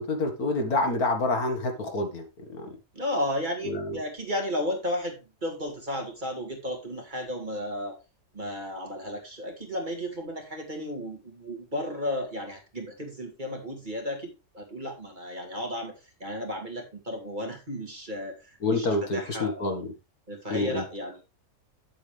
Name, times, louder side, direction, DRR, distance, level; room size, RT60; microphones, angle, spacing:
voice 1, 0.0-2.8 3.6-4.0 18.6-19.9 20.5-20.8, left 2 dB, 65° left, 4 dB, 2.2 m, -28 dB
voice 2, 2.9-8.0 8.3-19.8 20.3-21.2, left 1 dB, 30° right, 2 dB, 2.5 m, -34 dB
9.7 x 7.7 x 3.4 m, 0.27 s
omnidirectional pair, 1.7 m